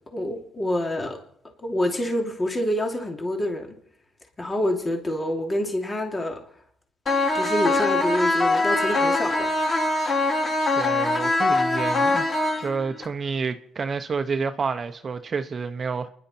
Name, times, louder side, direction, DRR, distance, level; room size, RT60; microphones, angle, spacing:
voice 1, 0.1-1.2 1.6-3.8 4.4-6.4 7.3-9.5, left 1 dB, 25° left, 2.8 m, -26 dB
sound 1, 7.1-13.1, left 2 dB, 45° left, 3.1 m, -23 dB
voice 2, 10.8-16.1, right 5 dB, 40° right, 0.9 m, -29 dB
29.0 x 11.0 x 4.5 m
cardioid pair, 90°, 0 cm